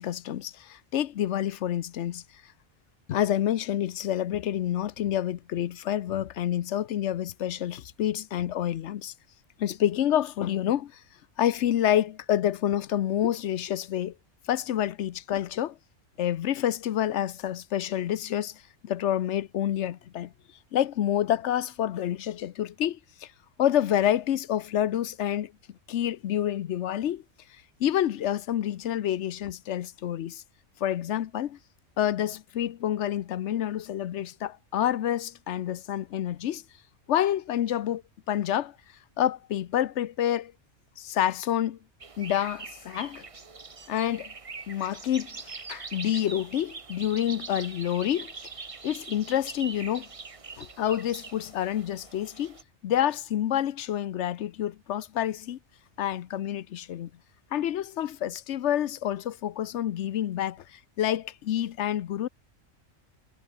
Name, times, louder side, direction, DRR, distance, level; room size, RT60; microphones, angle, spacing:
voice 1, 0.0-2.2 3.1-9.1 9.6-11.0 11.4-14.1 14.5-15.8 16.2-20.3 20.7-23.3 23.6-25.5 25.9-27.2 27.8-30.4 30.8-31.6 32.0-36.6 37.1-38.0 38.3-38.7 39.2-40.5 41.0-41.8 42.2-43.3 43.9-44.3 44.7-45.3 45.7-48.3 48.8-50.1 50.6-52.6 52.8-55.6 56.0-57.1 57.5-62.3, left 11 dB, 70° left, 1.0 m, -28 dB
sound 1, 42.0-52.6, right 4 dB, 30° right, 1.0 m, -43 dB
omnidirectional pair, 1.3 m